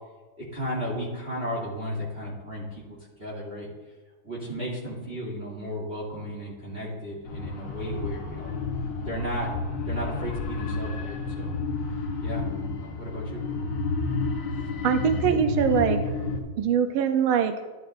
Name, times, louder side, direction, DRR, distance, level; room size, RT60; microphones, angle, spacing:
voice 1, 0.4-3.7 4.2-8.5 9.0-9.6 9.9-11.5 12.2-12.4 12.8-13.4, equal, 30° right, -7 dB, 2.8 m, -34 dB
sound 1, 7.2-16.4, left 3 dB, 65° left, 1.8 m, -30 dB
voice 2, 14.8-16.1 16.6-17.5, right 8 dB, 85° right, 7 dB, 1.5 m, -23 dB
12.5 x 11.5 x 2.6 m, 1.3 s
omnidirectional pair, 2.2 m